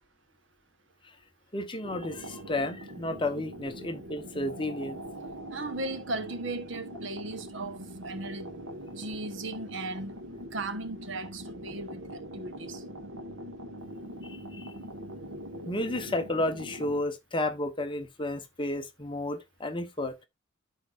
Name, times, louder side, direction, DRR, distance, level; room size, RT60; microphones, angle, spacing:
voice 1, 1.5-5.0 14.2-14.7 15.6-20.2, left 1 dB, 25° left, 0.9 m, -32 dB
sound 1, 1.8-17.0, equal, 90° right, 1.7 m, -42 dB
voice 2, 5.5-8.6 9.0-10.1 10.5-12.8, right 2 dB, 65° right, 1.0 m, -37 dB
13.5 x 4.6 x 2.4 m
head